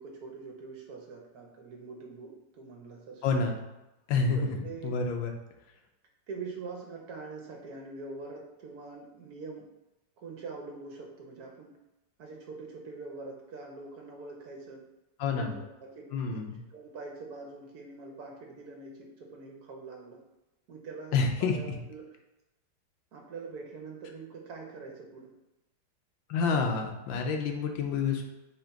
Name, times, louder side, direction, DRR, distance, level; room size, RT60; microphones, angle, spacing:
voice 1, 0.0-3.2 4.3-4.9 6.3-9.7 10.2-11.7 12.2-14.8 15.3-16.4 16.7-20.2 20.7-22.1 23.1-25.3 27.5-27.6, right 4 dB, 65° right, 0 dB, 1.1 m, -44 dB
voice 2, 3.2-3.6 4.1-4.6 4.8-5.3 15.2-15.6 16.1-16.6 21.1-21.8 26.3-28.2, left 4 dB, 90° left, 3 dB, 1.5 m, -28 dB
3.9 x 2.8 x 4.5 m, 0.99 s
omnidirectional pair, 2.0 m